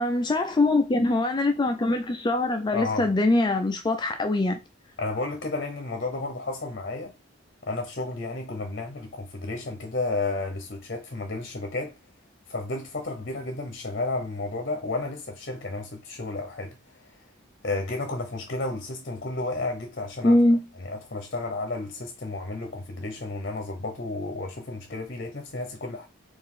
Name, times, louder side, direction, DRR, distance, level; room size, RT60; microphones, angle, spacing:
voice 1, 0.0-4.6 20.2-20.6, left 2 dB, 20° left, 0.3 m, -23 dB
voice 2, 2.7-3.1 5.0-7.1 7.7-11.9 12.5-17.2 17.6-20.4 20.8-26.1, left 2 dB, 50° left, 0.8 m, -32 dB
4.6 x 2.5 x 3.7 m
head